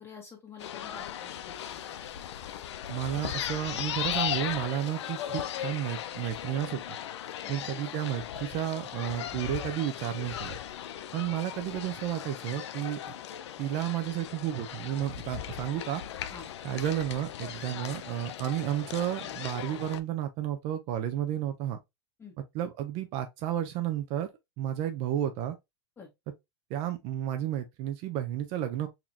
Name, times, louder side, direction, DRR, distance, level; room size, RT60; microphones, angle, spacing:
voice 1, 0.0-2.0 7.4-7.8 16.3-16.5 22.2-22.3 26.0-26.1, left 5 dB, 15° left, 1.7 m, -49 dB
newjersey OC musicpier mono, 0.6-20.0, left 10 dB, 80° left, 0.5 m, -37 dB
voice 2, 2.9-7.0 7.5-10.6 11.1-13.1 13.6-16.0 16.6-21.8 22.4-24.3 24.6-25.6 26.7-28.9, right 11 dB, 45° right, 0.6 m, -32 dB
4.1 x 2.9 x 2.8 m
hypercardioid pair, 120°, 14 cm